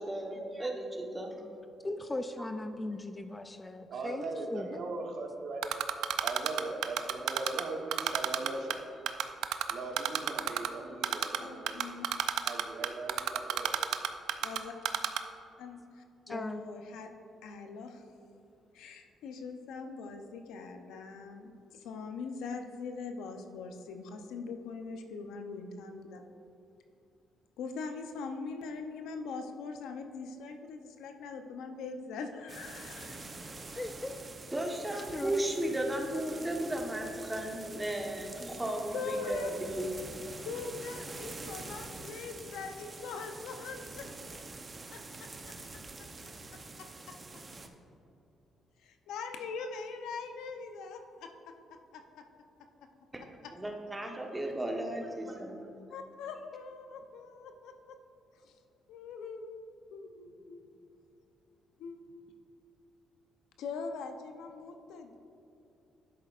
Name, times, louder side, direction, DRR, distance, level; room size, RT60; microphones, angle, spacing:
voice 1, 0.0-1.3 34.5-40.2 53.6-55.6, right 1 dB, 15° right, 1 dB, 1.1 m, -35 dB
voice 2, 1.8-4.8 16.3-16.6 33.8-34.2 35.1-35.5, left 2 dB, 20° left, 8 dB, 0.4 m, -38 dB
voice 3, 3.9-5.7 6.2-8.9 9.7-11.8 12.4-14.0, right 3 dB, 65° right, 2 dB, 1.0 m, -39 dB
Typing, 5.6-7.6 7.9-8.7 9.1-10.7 11.0-11.4 11.7-14.6 14.8-15.2, right 11 dB, 85° right, 0.4 m, -29 dB
voice 4, 11.4-12.1 14.4-14.7 15.6-15.8 16.3-17.1 17.4-18.0 18.7-26.5 27.6-33.8 38.9-39.5 40.4-44.1 44.9-45.5 46.5-47.4 48.8-52.2 53.4-53.5 55.9-58.0 58.3-58.6 58.9-59.5 59.9-60.6 61.8-62.0 63.6-65.2, left 4 dB, 85° left, 6 dB, 0.6 m, -42 dB
sound 1, 32.5-47.7, right 3 dB, 30° right, 0.7 m, -46 dB
10.5 x 7.9 x 2.5 m, 2.7 s
cardioid pair, 90°, 0 cm